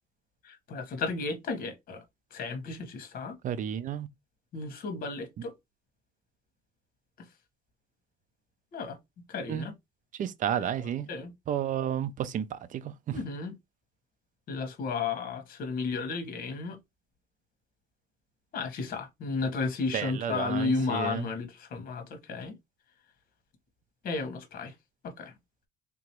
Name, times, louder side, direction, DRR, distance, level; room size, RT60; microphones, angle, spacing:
voice 1, 0.4-2.0 2.3-3.3 4.5-5.5 8.7-9.0 9.3-9.7 11.1-11.3 13.1-13.5 14.5-16.8 18.5-22.5 24.0-24.7 25.0-25.3, left 4 dB, 60° left, 1.4 m, -33 dB
voice 2, 3.4-4.1 9.5-9.7 10.2-11.1 11.5-13.2 19.9-21.3, right 9 dB, 50° right, 0.5 m, -32 dB
3.5 x 3.0 x 3.0 m
cardioid pair, 110°, 17 cm